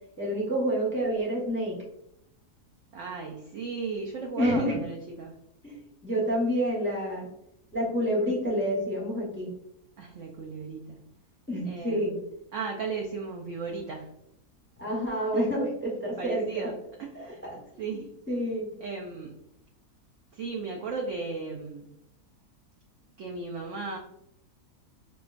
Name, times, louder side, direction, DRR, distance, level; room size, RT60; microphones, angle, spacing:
voice 1, 0.2-1.8 4.4-4.8 5.6-5.8 6.0-7.3 7.7-9.5 11.5-12.2 14.8-16.7 17.1-17.6 17.9-18.0 18.3-18.7, equal, 10° left, -5 dB, 0.7 m, -28 dB
voice 2, 2.9-5.3 10.0-11.0 11.6-12.2 12.5-14.2 16.2-16.7 17.0-17.4 17.8-18.1 18.8-19.4 20.3-21.9 23.2-24.0, right 4 dB, 70° right, 0 dB, 0.7 m, -36 dB
5.7 x 2.3 x 2.4 m, 0.79 s
omnidirectional pair, 1.7 m